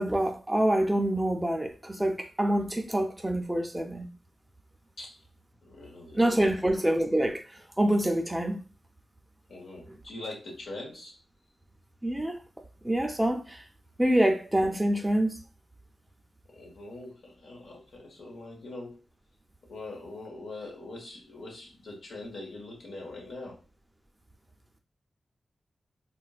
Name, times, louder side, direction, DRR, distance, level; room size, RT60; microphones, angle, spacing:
voice 1, 0.0-4.1 6.1-7.4 7.8-8.6 12.0-12.4 12.8-13.6 14.0-15.4, right 1 dB, 10° right, 0.4 m, -26 dB
voice 2, 5.6-6.7 9.5-11.1 16.5-19.0 19.7-23.6, left 2 dB, 90° left, 1.1 m, -43 dB
4.2 x 2.2 x 2.3 m
wide cardioid pair, 130°, 0 cm